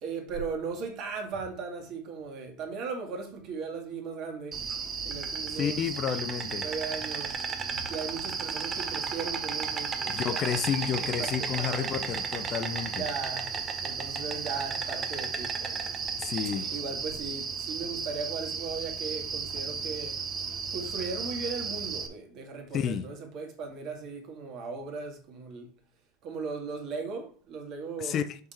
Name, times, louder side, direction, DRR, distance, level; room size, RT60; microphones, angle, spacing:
voice 1, 0.0-4.7 5.0-5.8 6.6-7.4 7.7-10.6 11.2-11.9 12.9-13.6 13.8-15.9 16.7-20.2 20.7-25.7 26.2-28.2, right 5 dB, 50° right, 2.1 m, -37 dB
Insect, 4.5-22.1, right 5 dB, 35° right, 1.1 m, -34 dB
voice 2, 5.6-6.7 10.1-13.0 16.2-16.7 22.7-23.0 28.0-28.4, left 8 dB, 40° left, 0.6 m, -31 dB
6.6 x 3.7 x 4.4 m
hypercardioid pair, 95°, 0 cm